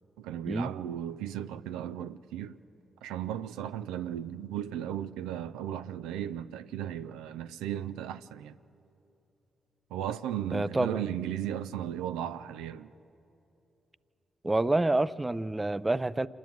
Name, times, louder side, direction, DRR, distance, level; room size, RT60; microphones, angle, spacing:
voice 1, 0.2-2.6 3.0-8.6 9.9-12.9, right 10 dB, 90° right, 0.4 m, -36 dB
voice 2, 10.5-11.0 14.4-16.3, right 2 dB, 20° right, 0.5 m, -28 dB
26.5 x 10.5 x 9.2 m
supercardioid pair, 50°, 0 cm